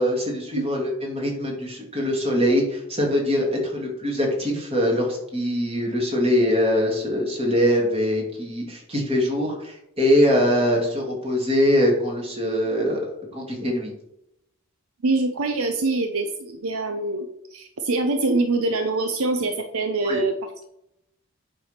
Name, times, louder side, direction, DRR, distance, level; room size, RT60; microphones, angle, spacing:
voice 1, 0.0-13.9 20.0-20.2, equal, 25° right, -1 dB, 2.3 m, -23 dB
voice 2, 15.0-20.3, right 2 dB, 70° right, 6 dB, 0.7 m, -24 dB
8.8 x 3.5 x 5.6 m, 0.81 s
head